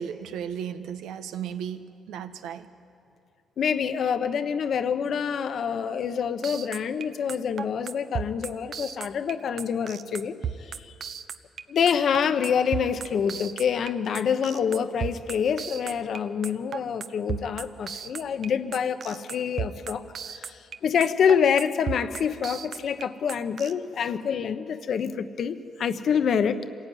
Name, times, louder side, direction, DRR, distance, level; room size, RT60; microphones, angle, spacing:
voice 1, 0.0-2.7, right 8 dB, 85° right, 9 dB, 1.2 m, -35 dB
voice 2, 3.6-10.3 10.6-10.9 11.7-26.6, left 7 dB, 60° left, 9 dB, 1.1 m, -26 dB
sound 1, 6.4-23.7, right 7 dB, 60° right, 0.9 m, -34 dB
26.5 x 16.5 x 9.3 m, 2.5 s
cardioid pair, 90°, 0 cm